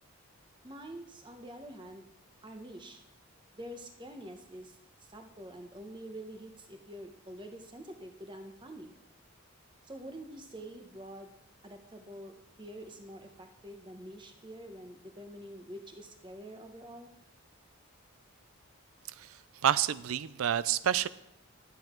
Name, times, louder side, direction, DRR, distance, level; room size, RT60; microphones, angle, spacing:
voice 1, 0.6-2.1 2.4-3.0 3.5-4.8 5.1-8.9 9.8-11.3 11.6-17.1, right 1 dB, 20° right, 5 dB, 1.0 m, -46 dB
voice 2, 19.6-21.1, right 9 dB, 80° right, 17 dB, 0.4 m, -28 dB
11.5 x 8.0 x 4.5 m, 0.80 s
head